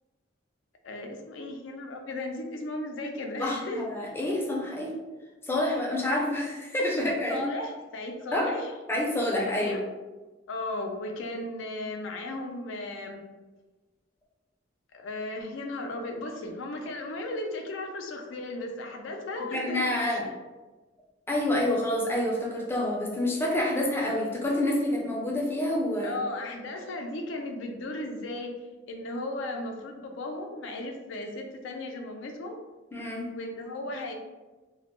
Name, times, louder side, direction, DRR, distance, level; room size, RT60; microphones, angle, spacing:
voice 1, 0.8-3.8 7.3-8.7 9.5-9.9 10.5-13.2 14.9-20.2 26.0-28.6 28.9-32.5 33.3-34.1, left 2 dB, 75° left, 3 dB, 0.4 m, -35 dB
voice 2, 3.4-4.9 5.4-7.4 8.3-8.5 8.9-9.8 19.5-20.3 21.3-26.2 32.9-33.3, left 1 dB, 10° left, -3 dB, 0.4 m, -28 dB
2.2 x 2.0 x 2.9 m, 1.2 s
head